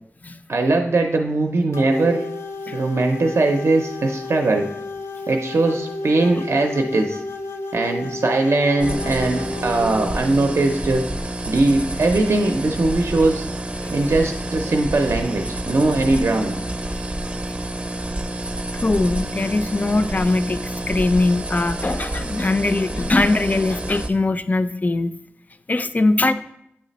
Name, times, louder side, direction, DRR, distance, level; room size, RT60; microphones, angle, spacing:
voice 1, 0.5-2.3 2.7-4.7 5.3-7.2 7.7-11.0 11.5-13.4 13.9-16.6, right 2 dB, 70° right, 3 dB, 0.5 m, -20 dB
sound 1, 1.7-10.1, left 3 dB, 85° left, 0.5 m, -32 dB
sound 2, 8.8-24.1, right 1 dB, 30° right, 0.6 m, -29 dB
voice 2, 18.8-25.1 25.7-26.3, left 2 dB, 35° left, 11 dB, 0.3 m, -21 dB
8.5 x 3.3 x 4.0 m, 0.77 s
wide cardioid pair, 80°, 5 cm